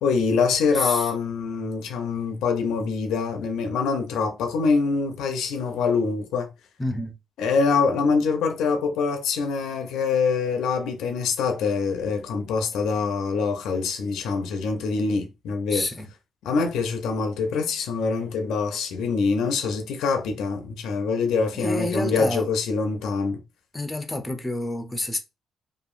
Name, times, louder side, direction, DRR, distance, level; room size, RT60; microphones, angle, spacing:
voice 1, 0.0-6.5 7.4-15.9 16.4-23.4, left 4 dB, 85° left, 0.5 m, -24 dB
voice 2, 0.7-1.1 6.8-7.2 15.7-16.1 21.5-22.5 23.7-25.2, left 2 dB, 15° left, 0.6 m, -29 dB
2.7 x 2.4 x 2.4 m
cardioid pair, 90°, 0 cm